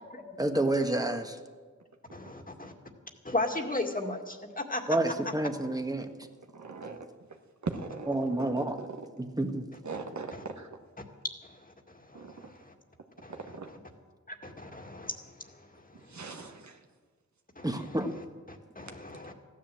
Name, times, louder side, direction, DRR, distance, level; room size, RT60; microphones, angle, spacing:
voice 1, 0.4-1.3 4.9-6.1 8.1-8.8 9.2-9.6 17.6-18.1, right 1 dB, 10° right, 6 dB, 1.5 m, -29 dB
voice 2, 2.1-2.7 3.2-5.1 10.3-10.4 12.1-12.7 13.2-13.4 14.3-15.5 17.6-19.3, left 2 dB, 25° left, 3 dB, 2.0 m, -36 dB
voice 3, 6.5-7.0 7.6-9.0 9.8-10.7 12.1-12.3 13.5-13.7 15.9-16.8, right 4 dB, 65° right, 5 dB, 1.5 m, -40 dB
15.0 x 10.0 x 7.7 m, 1.5 s
cardioid pair, 45°, 31 cm